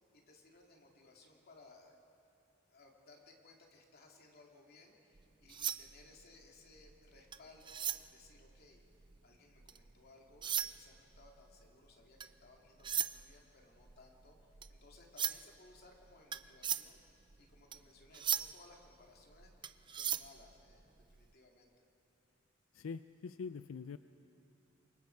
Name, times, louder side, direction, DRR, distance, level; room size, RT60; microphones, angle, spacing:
voice 1, 0.1-2.0 2.7-8.8 9.2-19.6 19.9-21.9, left 2 dB, 50° left, 0 dB, 2.7 m, -62 dB
sound 1, 5.2-9.9 10.3-21.3, right 9 dB, 25° right, 0.4 m, -40 dB
voice 2, 22.7-24.0, left 5 dB, 90° left, 12 dB, 0.4 m, -44 dB
28.0 x 24.0 x 4.7 m, 2.8 s
head